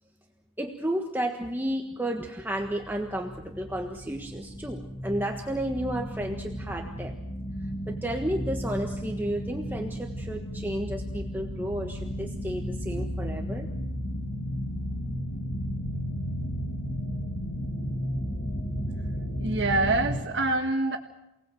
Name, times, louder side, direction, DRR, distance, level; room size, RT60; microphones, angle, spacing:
voice 1, 0.6-7.1 7.9-13.7, right 1 dB, 10° right, 2 dB, 1.4 m, -32 dB
sound 1, 2.5-20.2, equal, 50° left, 6.1 m, -34 dB
voice 2, 19.4-21.0, right 2 dB, 65° right, 0 dB, 1.7 m, -25 dB
29.0 x 19.0 x 7.8 m, 0.95 s
head